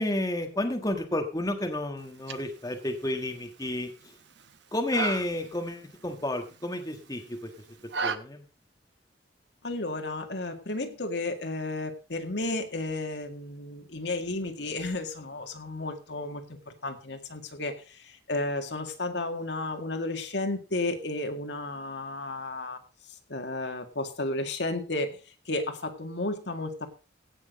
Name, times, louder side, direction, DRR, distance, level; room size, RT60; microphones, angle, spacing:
voice 1, 0.0-4.1 4.7-7.5 8.0-8.4, left 1 dB, 20° left, 4 dB, 1.5 m, -31 dB
sound 1, 2.0-8.2, right 5 dB, 70° right, 1.0 m, -38 dB
voice 2, 9.6-16.4 16.8-22.8 23.3-25.2 25.5-26.9, left 2 dB, 70° left, 6 dB, 1.9 m, -33 dB
16.5 x 6.3 x 5.2 m, 0.34 s
head